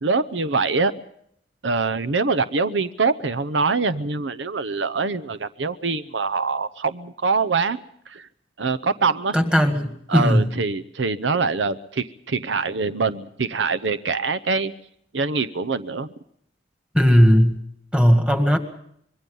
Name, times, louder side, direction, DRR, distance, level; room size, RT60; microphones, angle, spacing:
voice 1, 0.0-0.9 1.6-7.8 8.1-8.3 8.6-9.5 10.1-14.7 15.1-16.1, right 4 dB, 90° right, 13 dB, 0.8 m, -24 dB
voice 2, 9.3-10.4 16.9-17.6 17.9-18.6, equal, 5° right, 6 dB, 1.9 m, -17 dB
25.5 x 22.0 x 5.5 m, 0.70 s
head